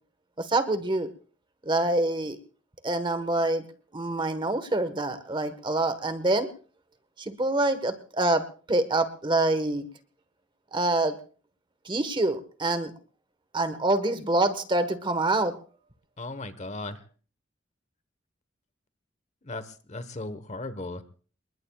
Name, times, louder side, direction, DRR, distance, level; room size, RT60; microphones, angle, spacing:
voice 1, 0.4-1.1 1.6-2.4 2.8-3.6 3.9-6.5 7.2-9.9 10.7-11.1 11.8-12.9 13.5-15.5, right 2 dB, 25° right, 10 dB, 1.3 m, -26 dB
voice 2, 16.2-17.0 19.4-21.0, left 2 dB, 40° left, 12 dB, 1.2 m, -36 dB
28.5 x 20.5 x 2.4 m, 0.39 s
head